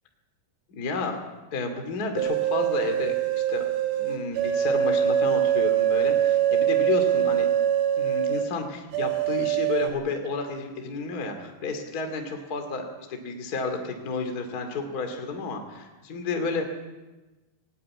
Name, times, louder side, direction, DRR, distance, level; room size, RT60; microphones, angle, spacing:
voice 1, 0.7-1.2 1.5-3.7 4.0-7.5 8.0-16.6, left 4 dB, 30° left, 4 dB, 2.0 m, -31 dB
sound 1, 2.2-8.4 8.9-9.9, right 10 dB, 50° right, 3.5 m, -23 dB
18.5 x 18.0 x 8.6 m, 1.1 s
omnidirectional pair, 5.0 m